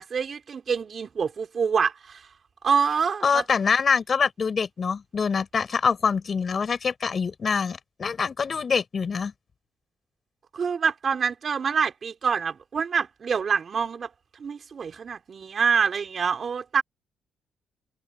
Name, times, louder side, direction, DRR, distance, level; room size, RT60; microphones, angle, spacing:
voice 1, 0.0-2.2 2.6-3.4 10.5-14.1 14.4-16.8, right 6 dB, 45° right, 3.9 m, -26 dB
voice 2, 3.2-9.3, left 5 dB, 40° left, 7.4 m, -25 dB
cardioid pair, 90°, 0 cm